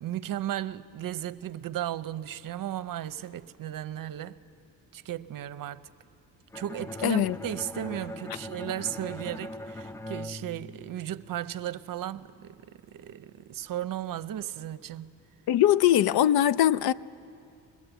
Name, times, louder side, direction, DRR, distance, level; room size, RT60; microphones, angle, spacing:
voice 1, 0.0-4.4 4.9-5.9 6.5-15.2, right 11 dB, 65° right, 0.8 m, -35 dB
Bowed string instrument, 6.5-11.4, left 1 dB, 10° left, 0.5 m, -40 dB
voice 2, 7.0-7.4 15.5-16.9, left 12 dB, 80° left, 0.6 m, -21 dB
22.0 x 21.5 x 8.1 m
cardioid pair, 110°, 37 cm